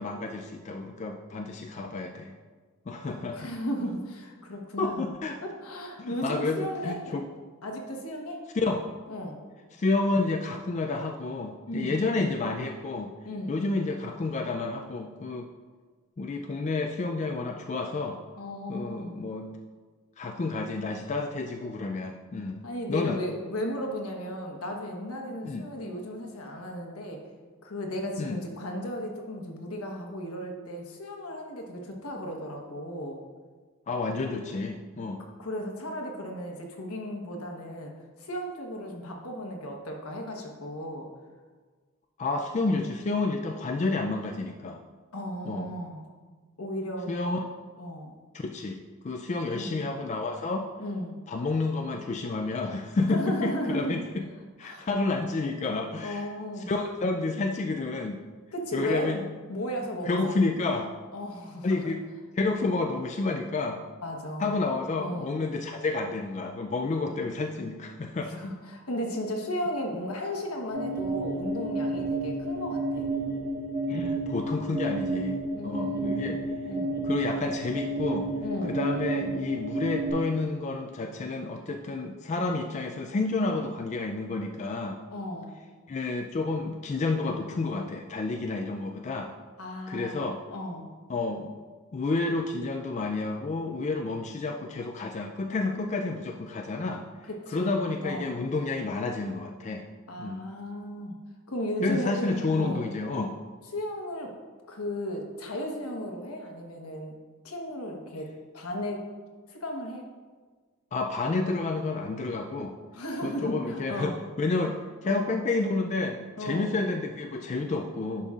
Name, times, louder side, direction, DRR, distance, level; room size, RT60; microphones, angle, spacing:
voice 1, 0.0-2.3 2.9-3.5 4.8-5.4 6.0-7.2 8.5-8.8 9.7-13.1 13.5-15.5 16.2-18.2 18.7-19.5 20.2-22.6 22.9-23.2 25.4-25.6 28.2-28.4 33.9-35.2 42.2-44.8 45.5-45.7 47.1-47.4 48.3-48.8 49.0-50.7 51.3-54.2 54.6-56.2 56.7-58.2 58.7-59.3 60.1-60.9 61.6-62.0 62.4-63.8 64.4-68.4 73.9-76.4 77.0-78.3 78.7-85.0 85.9-89.3 89.9-90.4 91.1-91.6 91.9-97.0 97.5-99.9 100.2-100.5 101.8-103.3 110.9-112.7 113.2-118.3, left 3 dB, 30° left, 3 dB, 0.3 m, -30 dB
voice 2, 3.3-5.0 5.4-7.1 7.6-8.4 9.1-9.4 11.7-12.0 13.2-13.6 18.4-19.2 22.6-27.2 27.6-33.2 35.4-37.9 38.2-41.1 42.7-42.9 45.1-46.1 46.6-47.1 47.8-48.2 49.5-49.8 50.8-51.2 53.1-54.0 54.6-54.9 56.0-56.7 58.5-59.1 59.5-60.3 61.1-61.9 64.0-64.5 65.0-65.4 68.2-73.1 75.5-76.4 76.6-76.9 78.4-78.8 85.1-85.5 89.6-90.2 90.5-90.9 97.2-98.4 100.1-101.2 101.5-102.8 103.7-104.3 104.7-107.1 107.4-108.3 108.5-109.1 109.5-110.0 112.9-114.2 115.0-115.4 116.4-116.7, equal, 80° left, 1 dB, 1.1 m, -35 dB
sound 1, 70.7-80.1, right 2 dB, 40° right, 1.5 m, -31 dB
10.5 x 5.4 x 2.4 m, 1.4 s
head